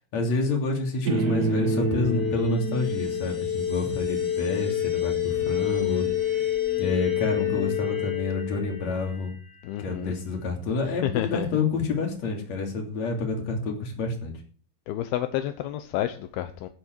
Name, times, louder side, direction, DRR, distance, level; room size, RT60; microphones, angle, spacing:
voice 1, 0.1-6.1 6.8-9.3 9.8-14.3, left 3 dB, 45° left, 4.1 m, -28 dB
sound 1, 1.0-9.0, left 5 dB, 85° right, 0.8 m, -27 dB
sound 2, 1.2-10.5, left 3 dB, 25° left, 2.1 m, -48 dB
voice 2, 9.6-10.1 10.9-11.5 14.9-16.7, left 12 dB, 80° left, 2.8 m, -30 dB
17.0 x 8.3 x 4.7 m
omnidirectional pair, 4.5 m